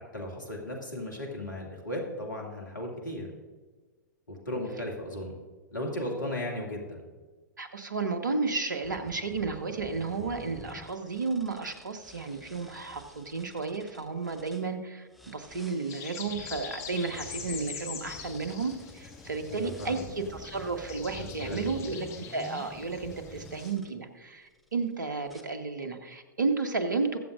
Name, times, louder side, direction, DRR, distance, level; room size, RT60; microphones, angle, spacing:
voice 1, 0.1-3.3 4.3-5.4 5.7-7.0 19.5-20.0 21.1-21.8, left 1 dB, 80° left, 0 dB, 2.3 m, -36 dB
voice 2, 7.6-27.2, right 4 dB, 75° right, 7 dB, 1.4 m, -33 dB
sound 1, 8.8-14.7 15.1-23.9 24.5-24.9 25.3-25.4, left 1 dB, ahead, 0.9 m, -50 dB
sound 2, 15.9-23.7, left 7 dB, 30° left, 1.8 m, -44 dB
21.5 x 7.4 x 2.5 m, 1.3 s
figure-of-eight pair, 105°, 10 cm